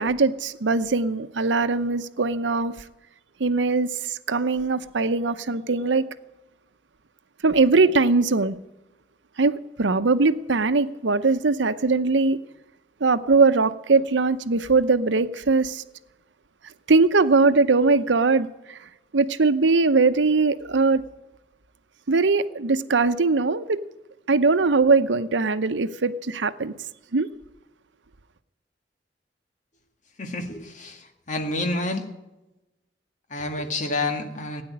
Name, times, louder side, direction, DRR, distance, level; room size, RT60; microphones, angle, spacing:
voice 1, 0.0-2.7 3.4-6.1 7.4-8.6 9.4-12.4 13.0-15.8 16.9-18.8 19.1-21.0 22.1-23.8 24.3-26.7 27.1-27.3, right 3 dB, 90° right, 0.8 m, -21 dB
voice 2, 30.2-32.0 33.3-34.6, left 2 dB, 45° left, 2.0 m, -29 dB
16.5 x 9.6 x 8.8 m
head